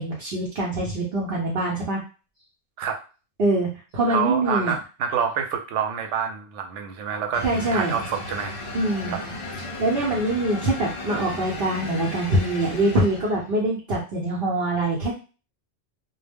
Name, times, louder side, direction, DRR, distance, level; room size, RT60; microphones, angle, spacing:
voice 1, 0.0-2.0 3.4-4.7 7.4-7.9 8.7-9.1 9.8-15.1, right 1 dB, 55° right, -3 dB, 0.8 m, -24 dB
voice 2, 4.1-8.6 9.1-9.2, right 7 dB, 90° right, 4 dB, 0.9 m, -27 dB
sound 1, 7.3-13.6, left 1 dB, 50° left, 0.3 m, -35 dB
2.1 x 2.0 x 3.4 m, 0.34 s
omnidirectional pair, 1.2 m